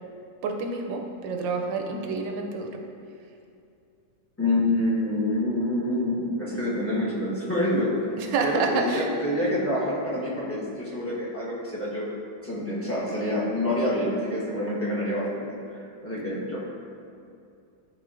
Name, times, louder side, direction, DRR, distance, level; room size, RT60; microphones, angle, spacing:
voice 1, 0.4-2.8 8.2-9.1, right 4 dB, 80° right, 3 dB, 1.3 m, -28 dB
voice 2, 4.4-8.0 8.4-12.1 12.4-15.4 15.7-16.6, left 1 dB, 10° left, -8 dB, 0.7 m, -27 dB
11.0 x 4.0 x 2.5 m, 2.5 s
omnidirectional pair, 2.2 m